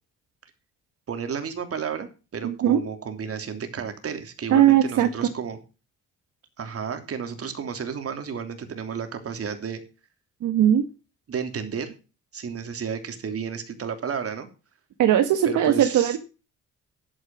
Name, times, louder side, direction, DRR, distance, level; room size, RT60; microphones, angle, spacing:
voice 1, 1.1-5.6 6.6-9.8 11.3-11.9 12.3-14.5 15.4-16.2, right 6 dB, 50° right, 7 dB, 3.0 m, -32 dB
voice 2, 2.4-2.8 4.5-5.3 10.4-10.9 15.0-16.2, right 10 dB, 80° right, 8 dB, 1.5 m, -19 dB
11.0 x 9.0 x 6.0 m, 0.33 s
cardioid pair, 90°, 30 cm